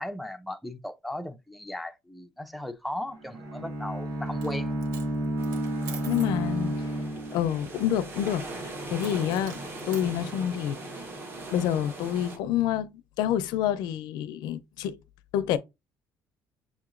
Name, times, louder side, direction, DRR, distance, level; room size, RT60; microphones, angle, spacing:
voice 1, 0.0-4.7, left 1 dB, ahead, 0.4 m, -37 dB
Bowed string instrument, 3.1-7.9, right 1 dB, 55° right, 1.3 m, -31 dB
Coin (dropping), 4.3-4.6 4.8-6.4 9.0-10.1, right 6 dB, 75° right, 1.0 m, -45 dB
sound 1, 5.4-12.4, right 2 dB, 35° right, 1.0 m, -40 dB
voice 2, 6.0-6.7 7.3-8.4 8.9-9.5 9.9-10.8 11.5-12.9 13.2-15.0 15.3-15.6, left 10 dB, 90° left, 0.4 m, -27 dB
6.2 x 2.9 x 2.4 m
cardioid pair, 145°, 7 cm